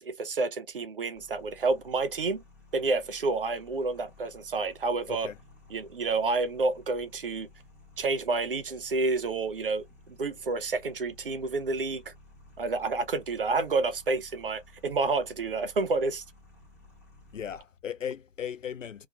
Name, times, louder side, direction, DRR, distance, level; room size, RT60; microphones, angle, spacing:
voice 1, 0.0-2.4 2.7-5.3 5.7-7.5 8.0-12.1 12.6-16.2, right 3 dB, 45° right, 0.6 m, -29 dB
sound 1, 1.1-17.6, left 2 dB, 10° left, 0.5 m, -55 dB
voice 2, 17.3-19.1, left 8 dB, 90° left, 0.6 m, -37 dB
2.3 x 2.2 x 2.8 m
figure-of-eight pair, 150°, 37 cm